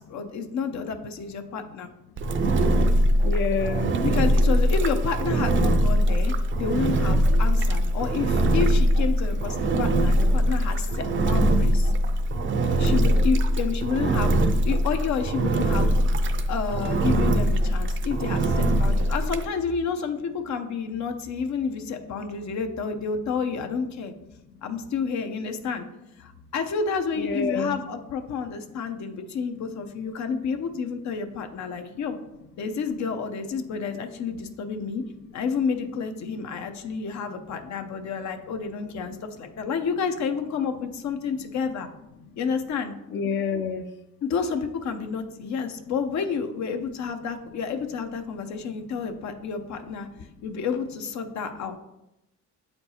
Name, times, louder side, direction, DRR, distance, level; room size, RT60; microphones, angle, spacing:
voice 1, 0.1-1.9 4.0-11.9 12.8-14.3 14.6-15.9 16.5-24.1 24.6-25.9 26.2-32.2 32.6-35.0 35.3-41.9 42.4-42.9 44.2-50.1 50.4-51.8, left 5 dB, 70° left, 7 dB, 0.7 m, -30 dB
Engine, 2.2-19.5, right 1 dB, 40° right, 0.5 m, -22 dB
voice 2, 3.2-3.9 27.2-27.8 43.1-43.9, left 5 dB, 40° left, 8 dB, 0.4 m, -27 dB
7.6 x 4.4 x 2.8 m, 0.91 s
cardioid pair, 90°, 30 cm